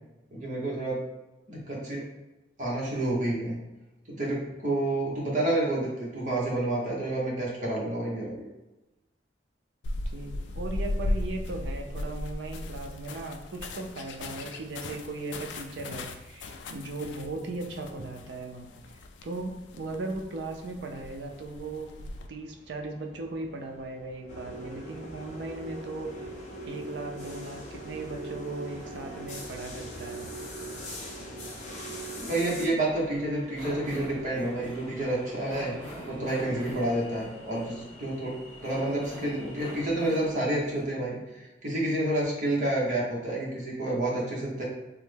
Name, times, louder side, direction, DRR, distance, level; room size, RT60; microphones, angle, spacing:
voice 1, 0.3-1.0 1.5-2.1 2.6-3.6 4.1-8.4 32.1-35.7 36.0-38.3 38.6-44.6, right 1 dB, 40° right, -5 dB, 0.9 m, -29 dB
sound 1, 9.8-22.3, left 1 dB, 70° left, 0.3 m, -37 dB
voice 2, 10.1-18.7 19.2-26.1 26.6-30.3, right 2 dB, 70° right, 2 dB, 0.5 m, -37 dB
sound 2, 21.2-40.8, equal, 10° left, 1.1 m, -46 dB
sound 3, 24.3-32.7, right 1 dB, 40° left, 0.6 m, -40 dB
3.3 x 2.1 x 3.3 m, 1.0 s
head